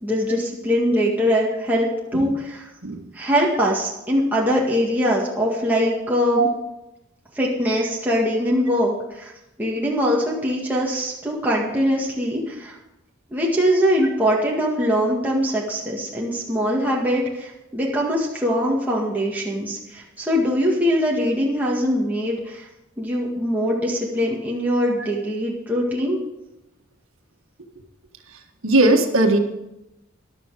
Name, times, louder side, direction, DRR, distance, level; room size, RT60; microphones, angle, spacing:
voice 1, 0.0-2.7 3.1-6.5 7.3-9.3 9.6-12.8 13.3-22.7 23.0-26.2, equal, 10° right, -4 dB, 1.9 m, -22 dB
voice 2, 28.6-29.4, right 2 dB, 85° right, 4 dB, 1.6 m, -18 dB
14.5 x 11.5 x 4.9 m, 0.91 s
head